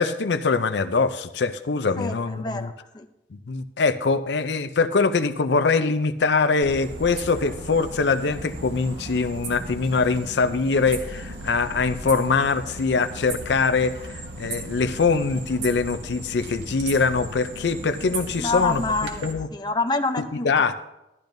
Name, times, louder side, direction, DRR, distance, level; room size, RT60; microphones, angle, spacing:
voice 1, 0.0-2.7 3.3-18.8 19.2-19.5 20.2-20.8, left 4 dB, 75° left, 12 dB, 0.5 m, -23 dB
voice 2, 2.0-3.0 18.4-19.2 19.5-20.8, left 3 dB, 25° left, 6 dB, 0.5 m, -27 dB
sound 1, 6.6-19.3, right 2 dB, 75° right, 1.4 m, -36 dB
12.0 x 12.0 x 2.6 m, 0.92 s
head